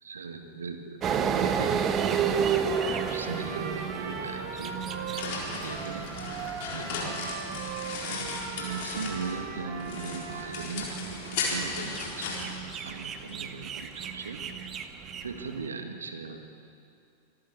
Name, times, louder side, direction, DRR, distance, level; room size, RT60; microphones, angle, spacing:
voice 1, 0.0-1.9 2.2-5.2 5.6-6.1 6.7-7.2 8.1-12.4 12.8-14.7 15.2-16.5, right 4 dB, 70° right, 6 dB, 2.0 m, -39 dB
sound 1, 1.0-15.6, right 7 dB, 30° right, 1.3 m, -33 dB
Trumpet, 2.4-10.7, right 4 dB, 45° right, 5.5 m, -39 dB
sound 2, 4.7-9.5 9.8-13.3, left 4 dB, 50° left, 4.2 m, -36 dB
25.0 x 13.0 x 8.5 m, 2.4 s
figure-of-eight pair, 90°, 0 cm